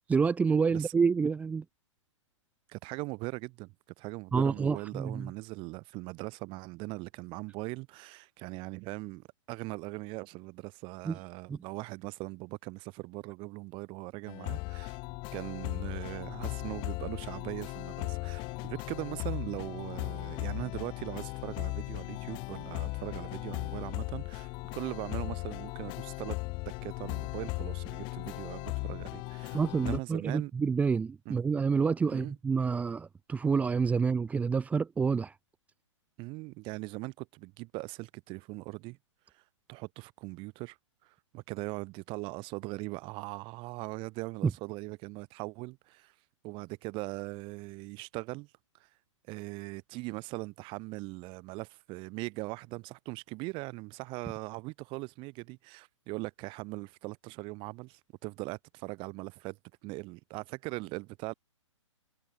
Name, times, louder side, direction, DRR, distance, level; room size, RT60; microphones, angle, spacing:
voice 1, 0.0-1.6 4.3-5.3 11.0-11.2 11.5-11.6 29.5-35.3, right 5 dB, 10° right, 0.8 m, -28 dB
voice 2, 2.7-15.0 15.3-26.4 26.8-30.5 31.3-31.4 32.1-32.3 36.2-39.0 39.3-39.4 39.7-40.8 41.0-46.1 46.4-48.5 48.8-48.9 49.3-59.6 59.8-61.3, right 24 dB, 30° right, 7.5 m, -40 dB
sound 1, 14.3-30.0, left 26 dB, 30° left, 1.1 m, -37 dB
hypercardioid pair, 130°, 16 cm